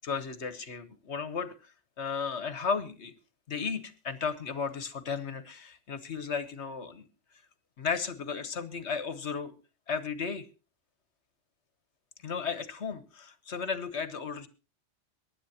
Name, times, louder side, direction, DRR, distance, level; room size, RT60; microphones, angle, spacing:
voice 1, 0.0-1.7 2.0-3.1 3.5-7.1 7.8-9.5 9.9-10.5 12.2-14.5, left 5 dB, 70° left, 12 dB, 1.5 m, -34 dB
24.0 x 11.0 x 2.9 m, 0.30 s
omnidirectional pair, 1.2 m